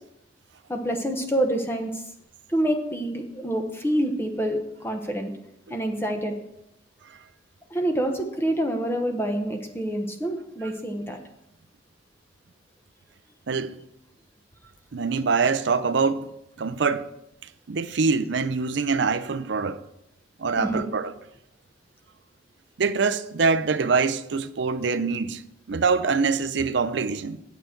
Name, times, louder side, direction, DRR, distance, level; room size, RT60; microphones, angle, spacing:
voice 1, 0.7-2.0 2.5-5.3 5.7-6.4 7.7-11.2 20.6-20.9, right 1 dB, 10° left, 1.0 m, -27 dB
voice 2, 13.5-13.8 14.9-16.3 16.6-17.1 17.7-19.8 20.4-21.1 22.8-25.4 25.7-27.4, right 4 dB, 60° right, 0.5 m, -24 dB
9.0 x 7.8 x 4.5 m
head